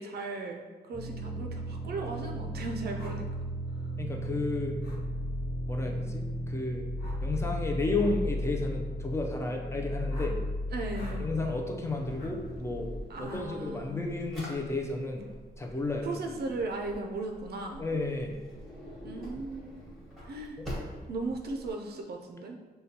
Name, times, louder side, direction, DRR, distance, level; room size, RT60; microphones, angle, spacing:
voice 1, 0.0-3.5 3.8-3.9 10.7-11.3 13.1-14.0 16.0-17.9 19.0-19.8 20.2-20.6 21.1-22.6, right 2 dB, 70° right, 2 dB, 0.4 m, -37 dB
sound 1, 0.9-13.0, equal, 25° right, 0.6 m, -35 dB
sound 2, 3.0-3.2 4.8-5.0 7.0-7.3 7.9-8.2 10.1-10.4 10.9-11.2 12.2-12.3 13.2-13.5, left 1 dB, 75° left, 0.7 m, -46 dB
voice 2, 4.0-4.8 5.7-6.9 7.2-10.4 11.2-12.9 13.2-15.3 15.6-16.1 17.8-18.3, left 3 dB, 15° left, 1 dB, 0.4 m, -32 dB
Drawer open or close, 11.8-21.7, equal, ahead, 1.2 m, -46 dB
6.5 x 2.2 x 2.8 m, 1.3 s
wide cardioid pair, 155°, 17 cm